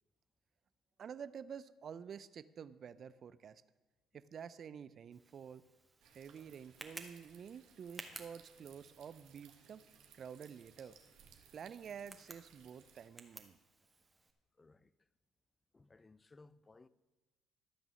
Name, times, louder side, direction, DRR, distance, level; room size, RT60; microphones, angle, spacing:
voice 1, 1.0-3.6 4.1-5.7 6.1-9.9 10.1-11.0 11.5-13.6, right 7 dB, 50° right, 0.4 m, -49 dB
Tick, 5.1-14.3, right 3 dB, 25° right, 1.6 m, -56 dB
sound 1, 6.0-13.1, right 7 dB, 70° right, 1.4 m, -64 dB
voice 2, 14.5-15.1 15.7-16.9, left 3 dB, 25° left, 0.5 m, -62 dB
14.0 x 6.1 x 6.9 m
hypercardioid pair, 55°, 0 cm